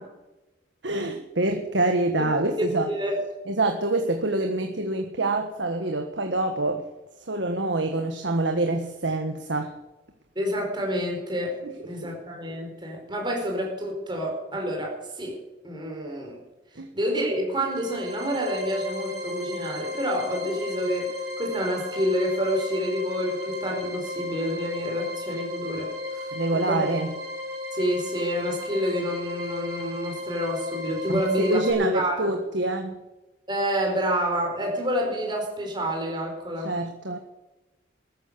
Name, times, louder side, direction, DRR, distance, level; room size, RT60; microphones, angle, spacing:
voice 1, 0.8-2.9 3.5-6.8 7.3-9.7 11.6-11.7 12.0-12.1 16.7-16.9 26.3-27.1 31.1-33.0 36.6-37.2, right 2 dB, 75° right, 4 dB, 1.6 m, -26 dB
voice 2, 2.9-3.2 10.3-16.4 16.9-26.3 26.7-26.8 27.7-32.3 33.5-36.7, equal, 25° right, 1 dB, 4.9 m, -28 dB
sound 1, 17.5-31.7, left 2 dB, 55° right, 5.4 m, -34 dB
14.0 x 12.0 x 6.9 m, 1.1 s
head